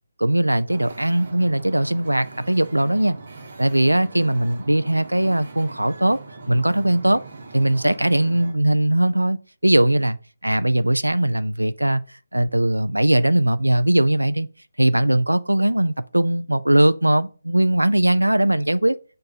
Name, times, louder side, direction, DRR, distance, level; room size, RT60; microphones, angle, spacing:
voice 1, 0.2-3.2 3.6-6.2 6.5-7.2 7.5-10.2 10.4-12.0 12.3-14.5 14.8-19.0, right 1 dB, 90° right, 0.5 m, -20 dB
Wind / Ocean, 0.7-8.6, right 3 dB, 45° right, 1.2 m, -40 dB
6.8 x 2.6 x 5.5 m
figure-of-eight pair, 150°, 0 cm